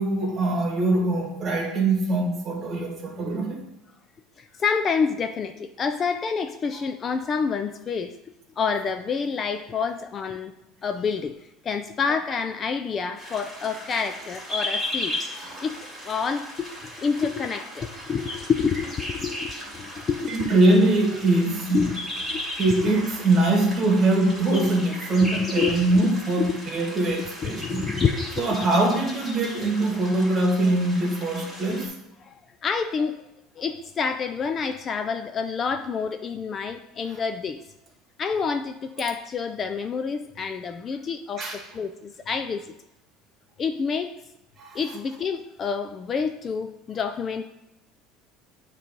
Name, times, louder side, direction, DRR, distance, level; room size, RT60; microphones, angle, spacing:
voice 1, 0.0-3.6 15.4-15.7 20.5-21.8 22.6-27.8 28.4-31.9 41.4-41.5 44.6-44.8, right 2 dB, 30° right, 1 dB, 1.8 m, -22 dB
voice 2, 4.4-8.1 8.6-10.5 10.8-11.4 11.6-15.2 15.6-15.8 16.0-16.7 17.0-20.5 21.7-22.0 22.3-22.4 22.8-22.9 25.2-25.8 26.4-26.6 27.4-28.6 32.2-32.3 32.6-33.2 33.6-37.6 38.2-42.7 43.6-44.1 44.7-47.4, left 5 dB, 30° left, 8 dB, 0.3 m, -28 dB
sound 1, 13.2-31.9, left 1 dB, 10° left, 2.4 m, -36 dB
9.1 x 3.2 x 5.2 m, 0.91 s
cardioid pair, 145°, 0 cm